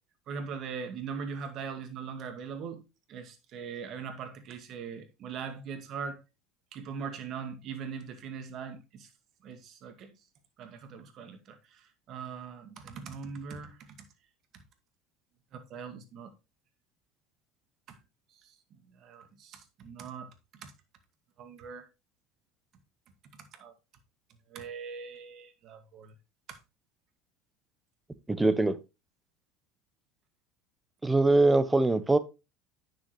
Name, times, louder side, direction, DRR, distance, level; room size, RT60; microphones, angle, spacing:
voice 1, 0.3-2.8 3.1-6.2 6.7-9.1 9.4-10.1 10.6-11.6 12.1-13.8 15.5-16.3 17.9-18.0 19.0-20.3 20.6-20.7 21.4-21.9 23.6-23.7 24.5-26.1 26.5-26.6, right 6 dB, 50° right, 2.0 m, -40 dB
voice 2, 28.3-28.8 31.0-32.2, right 2 dB, 10° right, 1.2 m, -22 dB
9.4 x 6.7 x 3.2 m
hypercardioid pair, 80°, 0 cm